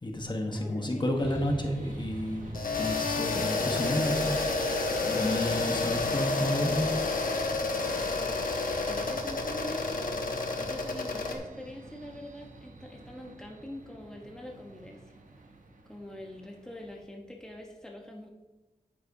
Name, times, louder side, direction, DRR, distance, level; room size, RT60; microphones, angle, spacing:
voice 1, 0.0-4.3 5.0-6.9, left 1 dB, 35° left, 2 dB, 1.2 m, -31 dB
voice 2, 0.5-1.1 8.1-8.4 8.8-10.2 10.5-15.0 15.9-18.3, left 1 dB, 5° left, 0 dB, 1.0 m, -44 dB
sound 1, 1.2-7.0, left 1 dB, 60° left, 3.2 m, -50 dB
sound 2, 1.2-17.0, right 2 dB, 70° right, 0.9 m, -47 dB
sound 3, 2.5-11.4, left 3 dB, 85° left, 1.1 m, -30 dB
9.4 x 9.4 x 2.7 m, 1.1 s
wide cardioid pair, 95°, 14 cm